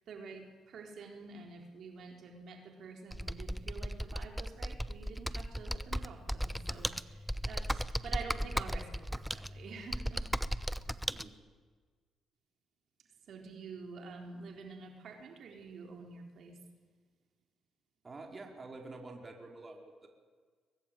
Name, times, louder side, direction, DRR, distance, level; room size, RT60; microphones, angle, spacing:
voice 1, 0.1-10.2 10.5-10.7 13.3-16.6, right 4 dB, 65° right, 3 dB, 4.1 m, -48 dB
Computer keyboard, 3.1-11.2, equal, ahead, 0.9 m, -36 dB
voice 2, 18.0-20.1, right 2 dB, 30° right, 2 dB, 4.5 m, -48 dB
23.5 x 19.5 x 9.3 m, 1.5 s
cardioid pair, 90°, 0 cm